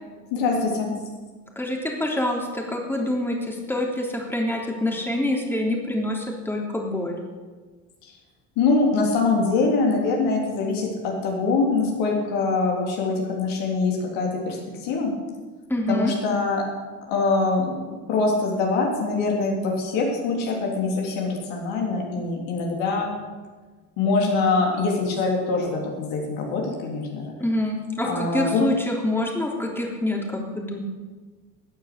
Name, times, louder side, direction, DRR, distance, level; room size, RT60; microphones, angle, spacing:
voice 1, 0.3-0.9 8.6-14.6 14.8-15.1 15.9-16.6 17.1-23.1 24.0-27.3 28.0-28.7, left 3 dB, 65° left, -1 dB, 3.6 m, -23 dB
voice 2, 1.6-7.2 15.7-16.1 27.4-30.8, left 1 dB, 5° left, 0 dB, 3.2 m, -26 dB
16.0 x 9.3 x 6.8 m, 1.4 s
hypercardioid pair, 60°, 49 cm